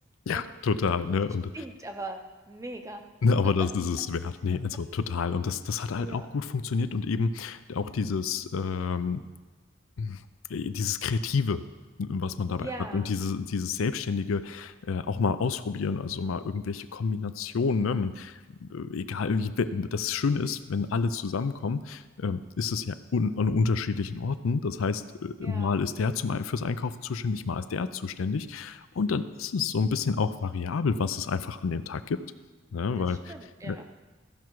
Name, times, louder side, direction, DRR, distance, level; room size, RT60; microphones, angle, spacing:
voice 1, 0.3-1.5 3.2-9.2 10.0-10.2 10.5-11.6 12.0-32.2 32.7-33.3 33.6-33.8, left 5 dB, 80° left, 12 dB, 0.5 m, -29 dB
voice 2, 1.5-2.2 2.5-3.0 3.4-3.7 6.0-6.3 12.6-13.2 25.4-25.7 32.9-33.8, right 2 dB, 15° right, 5 dB, 0.6 m, -40 dB
14.5 x 5.9 x 4.7 m, 1.3 s
head